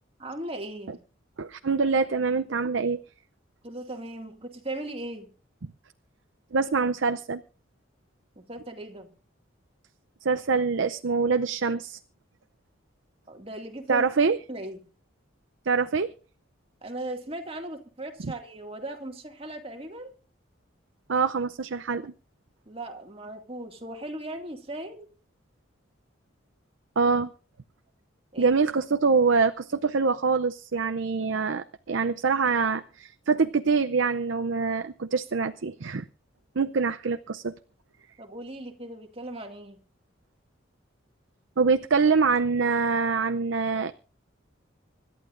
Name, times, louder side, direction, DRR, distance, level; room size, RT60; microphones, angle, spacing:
voice 1, 0.2-1.0 3.6-5.3 8.4-9.1 13.3-14.8 16.8-20.1 22.7-25.1 28.3-28.6 38.2-39.8, right 1 dB, 30° right, 2.2 m, -38 dB
voice 2, 1.4-3.0 6.5-7.4 10.2-12.0 13.9-14.4 15.7-16.1 18.2-18.3 21.1-22.1 27.0-27.3 28.4-36.0 36.6-37.5 41.6-43.9, right 4 dB, 70° right, 0.6 m, -25 dB
26.0 x 12.0 x 2.6 m
head